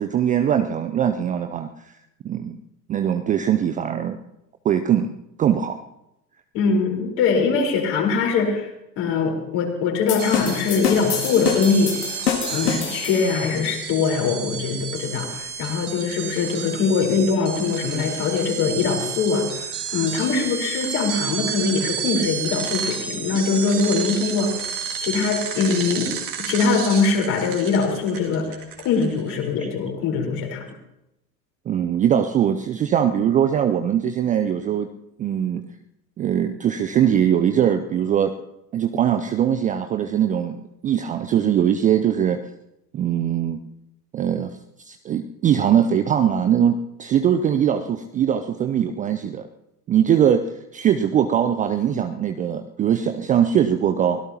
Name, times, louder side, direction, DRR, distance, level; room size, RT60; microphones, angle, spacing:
voice 1, 0.0-1.9 2.2-2.6 2.9-4.2 4.6-5.1 5.4-5.8 29.6-29.7 31.7-34.9 35.2-35.7 36.2-38.3 38.7-42.4 42.9-43.6 44.1-44.6 44.9-49.5 49.9-50.4 50.7-54.2, right 9 dB, 15° right, 8 dB, 0.5 m, -21 dB
voice 2, 6.5-8.7 9.0-12.0 12.5-24.7 25.0-26.1 26.4-28.6 28.8-30.6, left 5 dB, 45° left, 1 dB, 4.4 m, -22 dB
sound 1, 10.1-13.5, left 8 dB, 70° left, 2.0 m, -27 dB
sound 2, 10.2-29.3, right 7 dB, 40° right, 2.5 m, -31 dB
23.5 x 17.0 x 2.9 m, 0.86 s
figure-of-eight pair, 80°, 50 cm